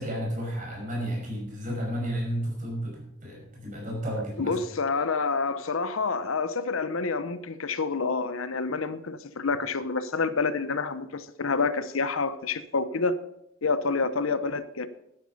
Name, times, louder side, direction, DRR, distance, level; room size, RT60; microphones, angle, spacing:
voice 1, 0.0-4.6, equal, 40° right, 5.4 m, -32 dB
voice 2, 4.4-13.2 13.6-14.9, left 4 dB, 80° left, 0.8 m, -28 dB
12.0 x 10.0 x 5.5 m
head